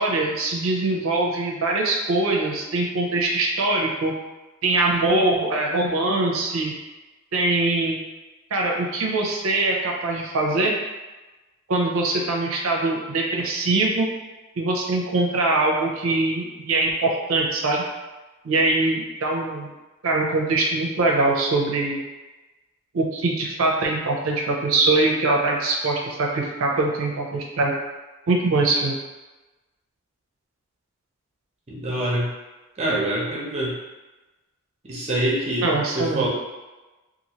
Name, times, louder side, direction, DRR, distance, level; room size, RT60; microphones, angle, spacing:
voice 1, 0.0-4.1 4.6-6.7 7.3-8.0 8.5-10.7 11.7-14.1 14.6-17.8 18.4-19.7 20.0-22.0 22.9-27.7 28.3-28.9 35.6-36.3, right 2 dB, 75° right, -1 dB, 0.5 m, -22 dB
voice 2, 31.7-32.3 32.8-33.7 34.8-36.3, right 1 dB, 30° right, -4 dB, 0.7 m, -25 dB
2.9 x 2.5 x 2.8 m, 1.1 s
head